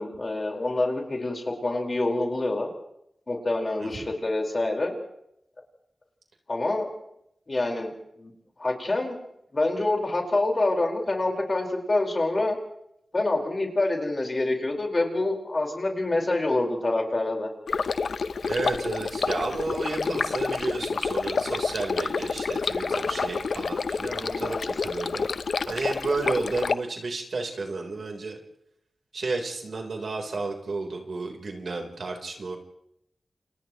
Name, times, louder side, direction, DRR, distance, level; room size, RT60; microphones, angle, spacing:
voice 1, 0.0-2.7 3.3-5.0 6.5-6.9 7.5-7.9 8.2-8.3 8.6-9.2 9.5-12.6 13.1-17.5 24.1-24.7, left 2 dB, 40° left, 1 dB, 4.7 m, -26 dB
voice 2, 3.8-4.1 18.4-25.3 25.7-28.4 29.1-32.6, right 3 dB, 75° right, 1 dB, 3.8 m, -32 dB
Stream, 17.7-26.7, left 4 dB, 80° left, 0.7 m, -28 dB
29.5 x 29.0 x 3.1 m, 0.79 s
wide cardioid pair, 100°, 0 cm